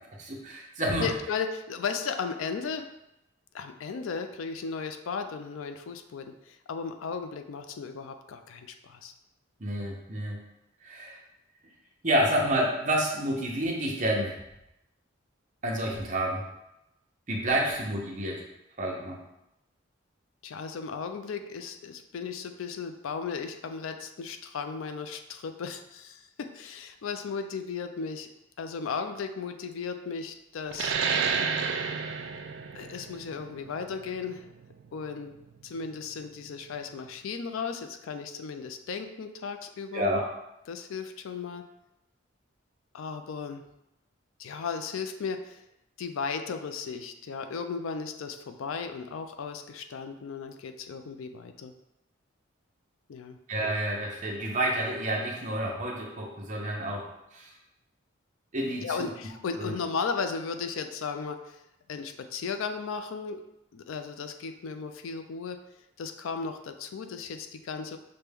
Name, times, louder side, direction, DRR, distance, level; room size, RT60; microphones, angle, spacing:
voice 1, 0.2-1.1 9.6-10.4 10.8-11.2 12.0-14.4 15.6-16.4 17.3-18.4 18.8-19.2 39.9-40.3 53.5-57.1 57.3-57.5 58.5-59.1 59.6-59.7, right 1 dB, 35° right, -1 dB, 0.7 m, -29 dB
voice 2, 1.0-2.9 3.5-9.1 20.4-28.3 28.6-30.9 32.7-34.4 34.9-35.3 35.6-40.1 40.7-41.6 42.9-43.6 44.4-45.6 46.0-51.7 53.1-53.4 58.8-61.6 61.9-63.4 63.7-65.6 66.0-68.0, left 5 dB, 80° left, 7 dB, 0.4 m, -35 dB
sound 1, 30.7-35.9, right 6 dB, 60° right, 0.3 m, -31 dB
5.8 x 2.2 x 3.4 m, 0.87 s
head